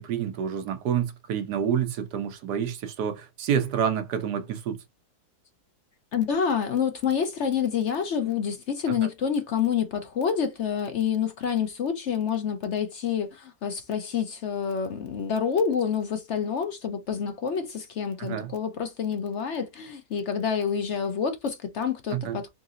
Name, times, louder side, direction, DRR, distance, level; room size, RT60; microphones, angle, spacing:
voice 1, 0.0-4.8 8.9-9.1 18.2-18.5 22.1-22.4, right 8 dB, 90° right, 1.4 m, -28 dB
voice 2, 6.1-22.5, left 7 dB, 60° left, 0.8 m, -28 dB
3.9 x 3.8 x 2.4 m
omnidirectional pair, 1.7 m